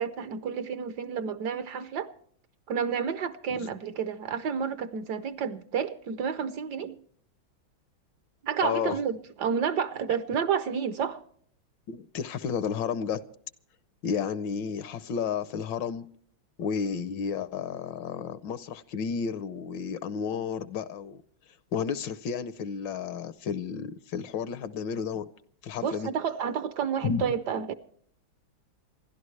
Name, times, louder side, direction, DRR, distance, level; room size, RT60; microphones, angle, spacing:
voice 1, 0.0-2.1 2.7-7.0 8.4-11.2 25.8-27.7, right 7 dB, 65° right, 1.2 m, -30 dB
voice 2, 8.6-9.0 11.9-13.2 14.0-16.1 16.6-21.2 21.7-25.3 25.6-26.1 27.0-27.2, left 6 dB, 70° left, 1.4 m, -32 dB
27.0 x 12.0 x 3.2 m
omnidirectional pair, 2.2 m